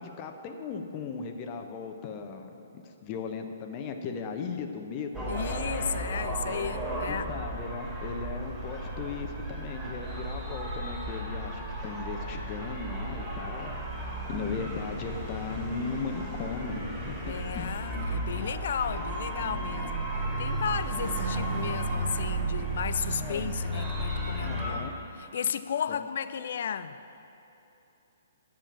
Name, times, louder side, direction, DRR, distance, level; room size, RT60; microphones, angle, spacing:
voice 1, 0.0-2.7 3.0-5.3 7.1-13.7 14.3-17.8 23.2-23.5 24.4-24.9 25.9-26.1, left 5 dB, 30° left, 5 dB, 1.0 m, -37 dB
sound 1, 5.1-24.7, right 1 dB, 10° right, 3.0 m, -34 dB
voice 2, 5.3-7.3 17.2-20.1 20.4-24.9 25.2-27.0, left 8 dB, 55° left, 13 dB, 0.5 m, -34 dB
10.0 x 7.5 x 8.8 m, 3.0 s
figure-of-eight pair, 125°, 0 cm